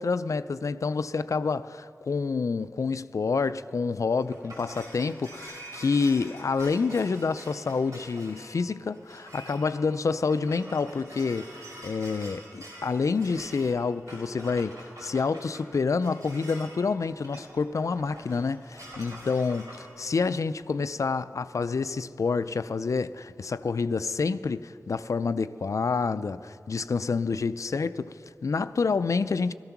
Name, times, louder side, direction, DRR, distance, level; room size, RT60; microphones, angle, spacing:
voice 1, 0.0-29.5, left 4 dB, 70° left, 0.4 m, -28 dB
sound 1, 4.1-19.8, right 1 dB, 80° right, 5.1 m, -46 dB
17.0 x 14.0 x 5.9 m
wide cardioid pair, 70°, 6 cm